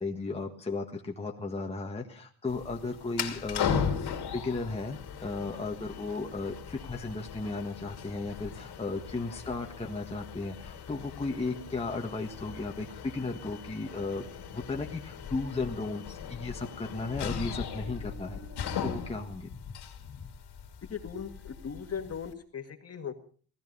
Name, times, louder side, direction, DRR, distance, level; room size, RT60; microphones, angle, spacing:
voice 1, 0.0-3.8 4.3-14.2 14.5-18.4 18.8-19.5, left 3 dB, 15° left, 1 dB, 1.5 m, -35 dB
sound 1, 2.5-22.3, left 7 dB, 90° left, 2.8 m, -38 dB
voice 2, 20.9-23.1, left 7 dB, 40° left, 6 dB, 2.0 m, -38 dB
18.5 x 13.5 x 5.4 m, 0.43 s
wide cardioid pair, 140°, 38 cm